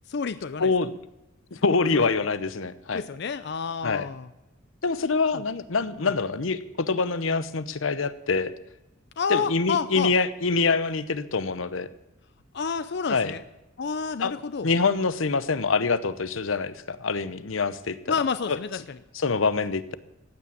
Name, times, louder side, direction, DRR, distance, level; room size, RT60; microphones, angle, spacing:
voice 1, 0.1-0.7 1.9-2.1 2.9-4.3 5.3-5.4 6.0-6.1 9.2-10.1 12.5-13.4 13.8-14.7 18.1-19.0, left 5 dB, 60° left, 13 dB, 0.5 m, -29 dB
voice 2, 0.6-0.9 1.5-3.0 3.8-4.1 4.8-8.5 9.3-11.9 13.1-13.3 14.2-14.3 14.6-18.0 18.5-18.6 19.1-19.9, left 4 dB, 90° left, 15 dB, 0.8 m, -25 dB
16.0 x 8.6 x 8.6 m, 0.94 s
head